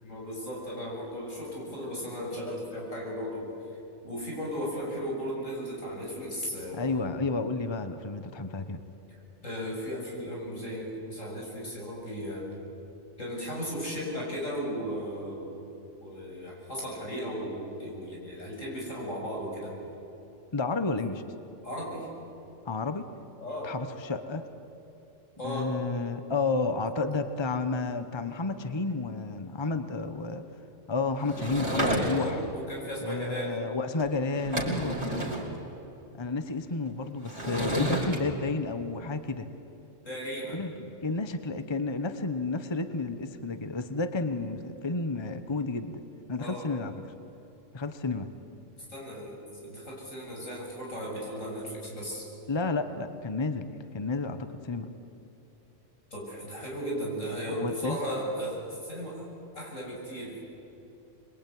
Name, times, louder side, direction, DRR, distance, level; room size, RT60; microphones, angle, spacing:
voice 1, 0.0-3.5 4.0-6.9 9.4-12.5 13.2-15.6 16.0-19.7 21.6-22.1 23.4-23.7 25.4-25.8 31.6-33.6 35.1-35.5 40.0-40.6 46.4-46.7 48.9-52.3 56.1-59.2 59.5-60.5, equal, 85° left, -3 dB, 7.6 m, -36 dB
voice 2, 6.7-8.8 20.5-21.2 22.6-23.1 23.6-24.4 25.4-30.4 30.9-32.4 33.0-35.0 36.1-39.5 40.5-46.0 46.3-47.0 47.7-48.3 52.5-54.9 57.5-58.0, left 3 dB, 25° left, 9 dB, 1.1 m, -31 dB
Sliding door / Wood, 31.3-32.5 34.0-34.1 34.3-35.5 37.2-38.2, right 1 dB, 40° right, 4.4 m, -31 dB
26.0 x 22.0 x 9.5 m, 3.0 s
omnidirectional pair, 1.3 m